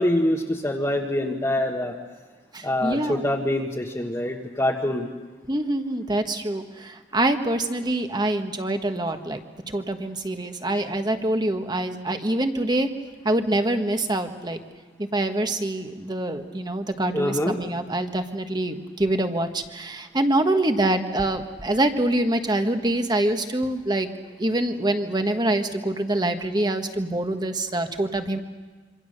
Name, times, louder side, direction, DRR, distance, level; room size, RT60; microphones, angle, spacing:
voice 1, 0.0-1.9 2.6-5.1 17.1-17.6, left 1 dB, 15° left, -2 dB, 1.5 m, -25 dB
voice 2, 2.5-3.2 5.5-9.4 9.7-12.9 13.2-14.6 15.0-24.1 24.4-28.4, right 1 dB, 25° right, 6 dB, 1.4 m, -25 dB
27.0 x 25.5 x 6.7 m, 1.4 s
head